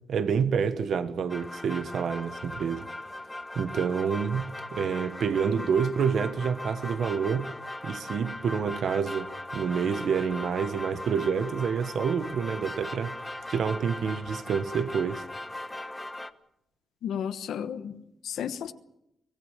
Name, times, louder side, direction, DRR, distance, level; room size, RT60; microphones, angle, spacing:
voice 1, 0.1-2.9 3.5-7.5 7.8-15.3, right 6 dB, 70° right, 1.4 m, -28 dB
sound 1, 1.3-16.3, left 1 dB, 15° left, 1.3 m, -39 dB
voice 2, 17.0-18.7, left 8 dB, 85° left, 1.1 m, -33 dB
24.0 x 18.0 x 7.4 m
cardioid pair, 90°, 0 cm